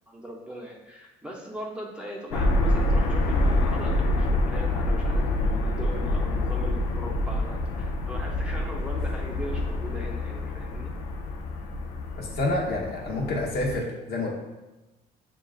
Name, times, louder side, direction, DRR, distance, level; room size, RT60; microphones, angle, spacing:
voice 1, 0.1-10.9, right 1 dB, 5° right, -2 dB, 0.7 m, -39 dB
sound 1, 2.3-13.8, left 1 dB, 90° left, 0.4 m, -26 dB
voice 2, 12.2-14.3, left 2 dB, 70° left, -2 dB, 1.0 m, -28 dB
6.8 x 2.4 x 2.4 m, 1.1 s
cardioid pair, 110°, 17 cm